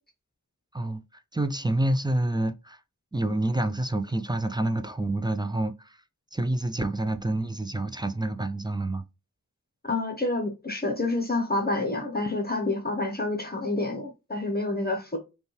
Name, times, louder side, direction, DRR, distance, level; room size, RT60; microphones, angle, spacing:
voice 1, 0.7-2.8 3.1-6.0 6.3-9.0, right 1 dB, 15° right, 0.4 m, -28 dB
voice 2, 9.8-15.2, left 2 dB, 30° left, 0.9 m, -28 dB
5.2 x 2.3 x 3.2 m
wide cardioid pair, 55°, 31 cm